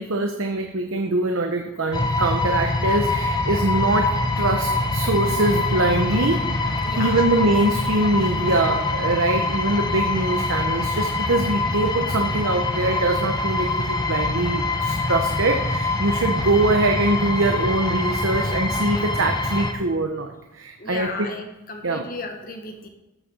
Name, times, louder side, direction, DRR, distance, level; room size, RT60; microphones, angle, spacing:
voice 1, 0.0-21.3 21.8-22.1, right 2 dB, 65° right, 4 dB, 0.9 m, -23 dB
sound 1, 1.9-19.7, left 2 dB, 20° left, 1.0 m, -24 dB
voice 2, 6.8-7.3 20.8-22.9, left 3 dB, 40° left, 4 dB, 1.5 m, -34 dB
13.5 x 6.8 x 6.2 m, 0.97 s
head